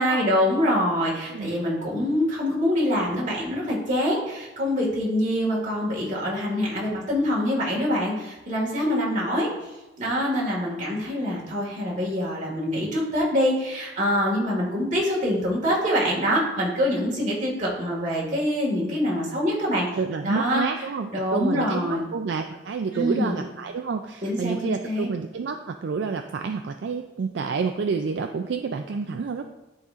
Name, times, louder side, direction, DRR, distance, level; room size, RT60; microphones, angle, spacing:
voice 1, 0.0-9.5 10.0-19.9 20.2-20.6 21.1-22.1 22.9-23.4 24.2-25.1, equal, 40° right, -4 dB, 1.9 m, -25 dB
voice 2, 20.0-29.4, right 5 dB, 65° right, 5 dB, 0.4 m, -29 dB
12.0 x 4.0 x 2.5 m, 1.1 s
head